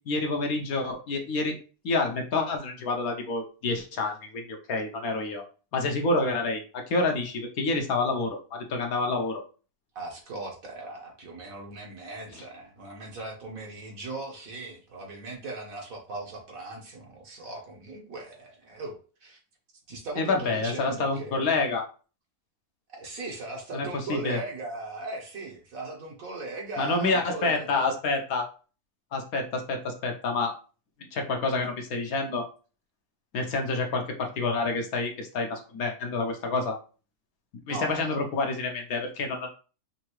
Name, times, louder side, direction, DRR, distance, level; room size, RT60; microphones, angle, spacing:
voice 1, 0.1-1.6 1.8-5.4 5.7-9.4 12.3-12.4 20.2-21.8 23.7-24.4 26.8-28.5 29.1-30.5 31.1-32.5 33.3-36.8 37.7-39.5, left 3 dB, 70° left, 3 dB, 1.2 m, -28 dB
voice 2, 9.9-18.9 19.2-19.4 19.9-21.5 22.9-27.9 37.7-38.2, right 2 dB, 60° right, 0 dB, 1.5 m, -38 dB
5.6 x 2.7 x 3.0 m, 0.36 s
omnidirectional pair, 1.7 m